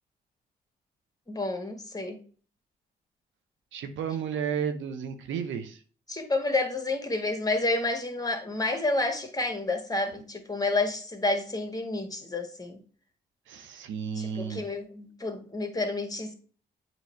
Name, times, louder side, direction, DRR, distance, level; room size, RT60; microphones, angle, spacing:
voice 1, 1.3-2.2 6.1-12.8 14.2-16.3, left 2 dB, 20° left, 4 dB, 1.7 m, -29 dB
voice 2, 3.7-5.8 13.5-14.7, right 7 dB, 75° right, 7 dB, 0.9 m, -33 dB
7.9 x 3.1 x 4.5 m, 0.41 s
hypercardioid pair, 45°, 20 cm